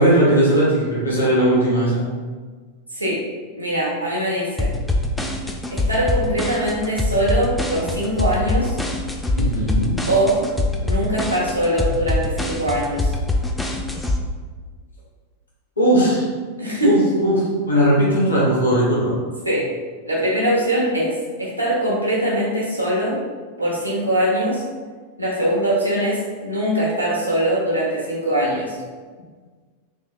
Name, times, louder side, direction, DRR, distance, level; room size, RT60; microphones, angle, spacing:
voice 1, 0.0-2.0 9.4-9.9 15.8-16.2 16.8-17.4 17.7-19.1, right 1 dB, 75° left, -6 dB, 0.9 m, -18 dB
voice 2, 3.6-4.7 5.7-8.8 10.1-10.4 10.8-13.1 16.6-17.0 19.4-19.7 20.1-23.2 23.6-24.6 25.2-28.8, right 1 dB, 85° right, -4 dB, 0.8 m, -22 dB
sound 1, 4.6-14.2, left 2 dB, 5° left, 0.3 m, -23 dB
3.6 x 2.8 x 2.2 m, 1.5 s
figure-of-eight pair, 90°, 0 cm